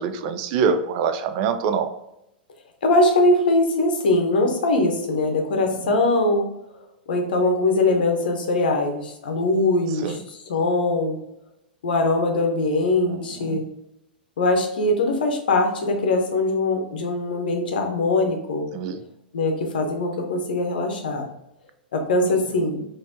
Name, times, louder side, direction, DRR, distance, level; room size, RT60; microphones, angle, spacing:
voice 1, 0.0-1.9 5.8-5.9 10.0-10.2 13.0-13.6 18.7-19.0, right 6 dB, 45° right, 9 dB, 0.4 m, -25 dB
voice 2, 2.8-6.5 7.1-11.2 11.8-13.6 14.4-18.6 19.3-21.3 21.9-22.8, left 2 dB, 65° left, 3 dB, 0.8 m, -21 dB
4.1 x 2.7 x 2.8 m, 0.84 s
figure-of-eight pair, 100°, 5 cm